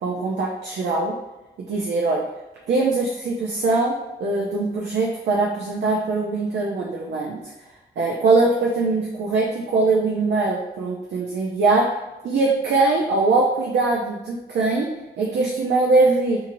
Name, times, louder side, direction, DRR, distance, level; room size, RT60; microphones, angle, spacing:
voice 1, 0.0-1.1 1.7-2.2 2.7-7.4 8.0-11.9 12.2-14.9 15.2-16.4, right 3 dB, 80° right, -2 dB, 0.5 m, -21 dB
2.8 x 2.7 x 2.6 m, 1.0 s
cardioid pair, 100°, 18 cm